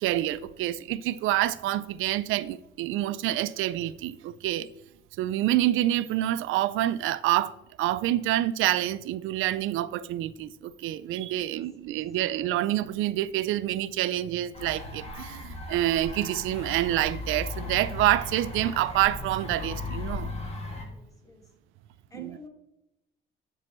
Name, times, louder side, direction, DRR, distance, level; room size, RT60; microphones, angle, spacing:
voice 1, 0.0-4.7 5.2-20.3 22.2-22.4, right 14 dB, 90° right, 0.4 m, -27 dB
voice 2, 11.3-12.0 20.8-21.5 22.1-22.5, left 2 dB, 15° left, 2.0 m, -52 dB
sound 1, 14.5-20.8, left 2 dB, 30° left, 2.1 m, -37 dB
10.5 x 6.1 x 3.1 m
cardioid pair, 90°, 20 cm